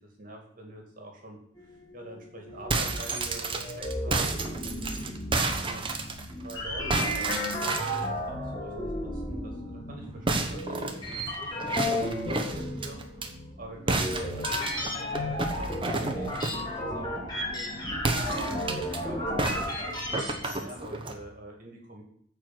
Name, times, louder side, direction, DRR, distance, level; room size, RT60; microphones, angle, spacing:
voice 1, 0.2-13.0 13.3-17.8 18.3-22.0, right 1 dB, 50° right, 1 dB, 2.4 m, -46 dB
sound 1, 1.6-20.8, left 1 dB, 25° left, 2.7 m, -34 dB
sound 2, 2.5-6.5 6.9-8.1 10.2-13.3 13.9-16.7 18.0-19.0 19.4-21.2, right 3 dB, 30° right, 1.2 m, -31 dB
13.5 x 4.8 x 7.8 m, 0.68 s
head